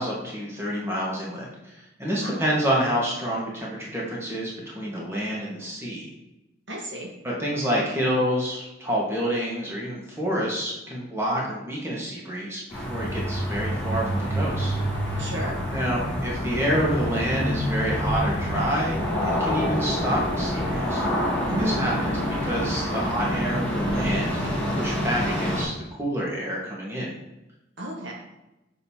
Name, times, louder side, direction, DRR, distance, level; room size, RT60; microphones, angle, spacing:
voice 1, 0.0-6.1 7.2-14.7 15.7-21.1 21.6-27.1, equal, 15° right, -4 dB, 1.4 m, -28 dB
voice 2, 6.7-7.1 15.2-15.6 21.5-22.2 27.8-28.1, equal, 65° right, -1 dB, 1.3 m, -32 dB
sound 1, 12.7-25.6, equal, 5° left, 1.6 m, -27 dB
6.7 x 5.3 x 2.8 m, 0.96 s
head